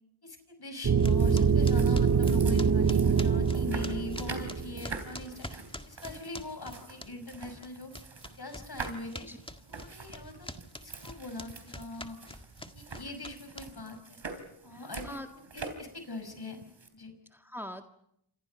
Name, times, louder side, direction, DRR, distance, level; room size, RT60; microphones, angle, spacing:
voice 1, 0.2-5.6 5.8-7.9 8.3-9.3 9.7-10.5 10.8-12.2 12.7-14.2 14.6-16.6 16.9-17.1, left 2 dB, 55° left, 7 dB, 6.0 m, -42 dB
sound 1, 0.8-4.9, right 6 dB, 40° right, 0.9 m, -25 dB
sound 2, 1.0-7.4 7.6-14.0, left 1 dB, 10° left, 1.8 m, -44 dB
sound 3, 1.0-16.9, right 4 dB, 65° right, 3.7 m, -45 dB
voice 2, 14.7-15.3 17.3-18.0, equal, 5° right, 5 dB, 1.8 m, -44 dB
28.5 x 27.0 x 5.4 m, 0.75 s
cardioid pair, 55°, 47 cm